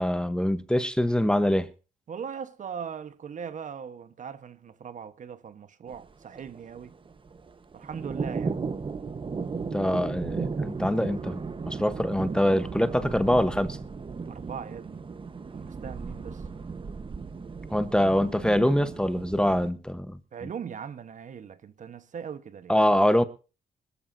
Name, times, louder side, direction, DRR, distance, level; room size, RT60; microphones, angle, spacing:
voice 1, 0.0-1.7 9.7-13.8 17.7-20.2 22.7-23.2, equal, 5° left, 1.0 m, -24 dB
voice 2, 2.1-6.9 7.7-8.6 14.3-15.0 15.5-16.4 20.3-22.7, right 7 dB, 55° right, 1.2 m, -40 dB
sound 1, 5.9-19.7, right 5 dB, 35° right, 1.1 m, -35 dB
24.5 x 13.5 x 2.7 m
cardioid pair, 110°, 16 cm